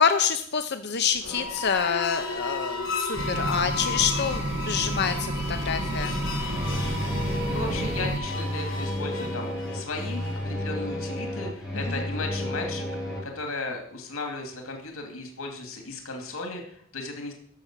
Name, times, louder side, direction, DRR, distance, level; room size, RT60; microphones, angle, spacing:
voice 1, 0.0-6.2 11.9-12.0, left 6 dB, 55° left, 8 dB, 0.7 m, -27 dB
sound 1, 1.1-10.5, left 3 dB, 70° left, 3.1 m, -35 dB
sound 2, 3.1-8.2, right 1 dB, 55° right, 1.3 m, -30 dB
sound 3, 6.5-13.2, left 1 dB, ahead, 4.7 m, -32 dB
voice 2, 7.5-12.8 13.2-17.3, left 3 dB, 90° left, 3 dB, 2.6 m, -35 dB
13.0 x 6.8 x 7.5 m, 0.62 s
head